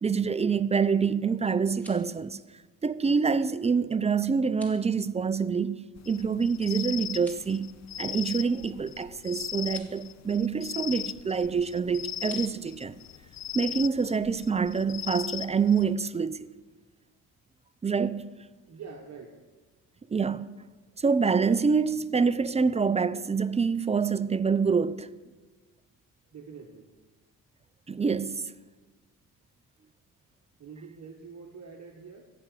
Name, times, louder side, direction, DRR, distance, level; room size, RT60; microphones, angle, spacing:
voice 1, 0.0-2.4 2.8-7.7 8.0-13.0 13.5-16.5 17.8-18.3 20.1-20.5 21.0-25.1 27.9-28.5, right 5 dB, 20° right, 0.3 m, -26 dB
sound 1, 1.6-2.2 4.4-4.8 7.1-7.6 9.6-9.9 12.2-12.5, equal, 5° left, 2.5 m, -50 dB
sound 2, 6.0-15.9, left 11 dB, 45° left, 0.5 m, -38 dB
voice 2, 18.7-19.4 26.3-26.9 30.6-32.2, right 5 dB, 45° right, 1.3 m, -45 dB
14.0 x 6.0 x 9.0 m
cardioid pair, 95°, 39 cm